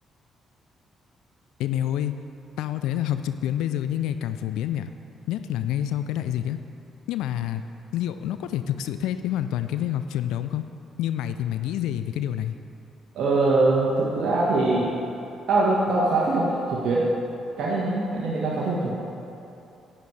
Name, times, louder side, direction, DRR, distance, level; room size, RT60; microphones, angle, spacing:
voice 1, 1.6-2.2 2.6-4.9 5.3-6.6 7.1-7.6 7.9-10.7 11.0-12.5, left 11 dB, 75° left, 10 dB, 0.3 m, -27 dB
voice 2, 13.1-14.9 15.5-17.0 17.6-18.9, right 2 dB, 60° right, -6 dB, 1.4 m, -22 dB
10.5 x 8.8 x 3.3 m, 2.8 s
hypercardioid pair, 45°, 0 cm